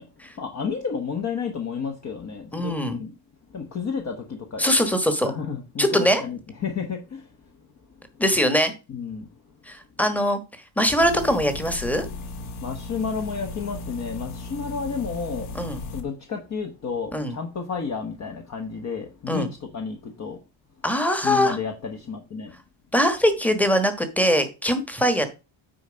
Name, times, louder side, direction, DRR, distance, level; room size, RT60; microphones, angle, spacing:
voice 1, 0.4-3.2 3.5-4.6 5.2-7.4 8.9-9.4 12.6-15.6 15.9-20.4 21.2-22.5, left 5 dB, 35° left, 1.2 m, -31 dB
voice 2, 2.5-3.0 4.6-5.3 5.8-6.2 8.2-8.7 9.7-10.4 10.8-12.1 15.5-15.8 17.1-17.4 19.3-19.5 20.8-21.6 22.9-25.3, equal, 5° left, 1.3 m, -22 dB
sound 1, 11.0-16.0, left 2 dB, 80° left, 1.6 m, -36 dB
9.2 x 4.4 x 5.1 m
cardioid pair, 145°, 48 cm